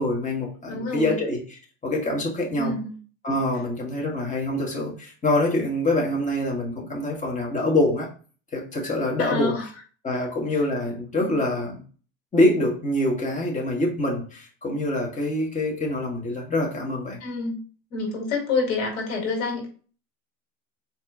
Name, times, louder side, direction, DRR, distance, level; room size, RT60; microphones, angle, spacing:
voice 1, 0.0-2.7 3.2-8.1 8.5-9.5 10.0-11.8 12.3-17.2, left 1 dB, 20° left, 1.6 m, -25 dB
voice 2, 0.7-1.2 2.6-2.9 9.2-9.7 11.2-11.3 17.2-17.6 17.9-19.7, left 3 dB, 80° left, 1.9 m, -27 dB
4.3 x 3.0 x 3.7 m
hypercardioid pair, 90°, 39 cm